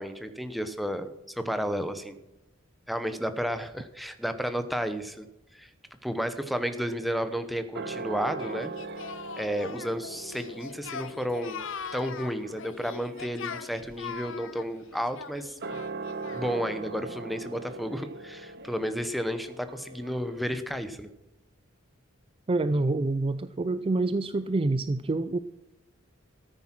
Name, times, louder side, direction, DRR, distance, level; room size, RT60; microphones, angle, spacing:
voice 1, 0.0-2.2 2.9-5.3 5.5-5.7 6.0-8.7 9.4-11.6 11.9-15.5 16.3-21.1, equal, ahead, 9 dB, 0.9 m, -32 dB
sound 1, 6.7-20.5, right 3 dB, 55° right, 0.9 m, -41 dB
Singing, 8.4-16.7, left 6 dB, 65° left, 0.8 m, -41 dB
voice 2, 22.5-25.4, right 2 dB, 25° right, 13 dB, 0.4 m, -27 dB
14.0 x 9.7 x 6.0 m, 0.93 s
head